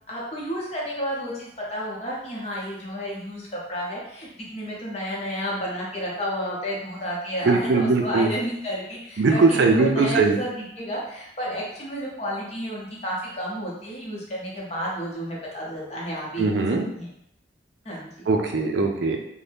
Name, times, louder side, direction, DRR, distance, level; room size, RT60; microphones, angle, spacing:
voice 1, 0.1-16.6 17.0-17.1 17.8-18.1, equal, 35° left, -4 dB, 0.7 m, -31 dB
voice 2, 7.4-8.3 9.2-10.4 16.4-16.9 18.3-19.2, right 3 dB, 65° right, 3 dB, 0.4 m, -20 dB
2.7 x 2.1 x 3.3 m, 0.75 s
head